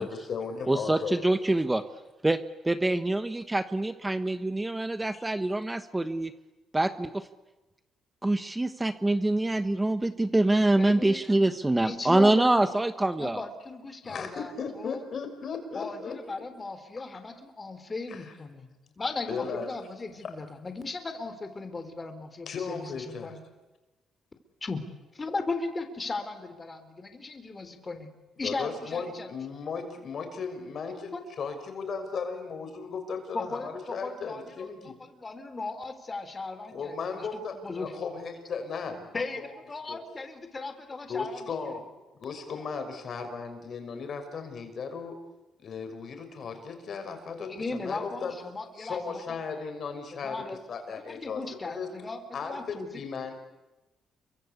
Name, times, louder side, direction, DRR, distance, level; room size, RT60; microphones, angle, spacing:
voice 1, 0.0-1.2 5.1-5.2 14.0-16.2 18.1-18.4 19.3-19.7 20.2-20.3 22.5-23.4 28.4-35.0 36.7-39.5 39.9-40.0 41.1-41.9 42.2-45.2 45.6-48.3 48.7-51.9 52.3-53.4, left 5 dB, 55° left, 7 dB, 6.2 m, -36 dB
voice 2, 0.7-1.8 2.2-2.4 2.6-6.3 6.7-7.3 8.2-13.4, right 2 dB, 15° right, 11 dB, 1.2 m, -25 dB
voice 3, 10.8-11.2 11.8-12.7 13.2-14.5 14.8-15.0 15.7-18.7 19.0-23.4 24.6-24.8 25.2-28.1 28.4-29.3 31.1-31.2 33.3-33.7 34.0-34.7 35.1-36.9 37.6-37.9 39.1-39.4 39.7-41.4 47.5-49.2 50.2-50.6 51.1-52.9, left 3 dB, 30° left, 8 dB, 3.9 m, -36 dB
29.5 x 24.0 x 8.5 m, 1.1 s
cardioid pair, 90°, 0 cm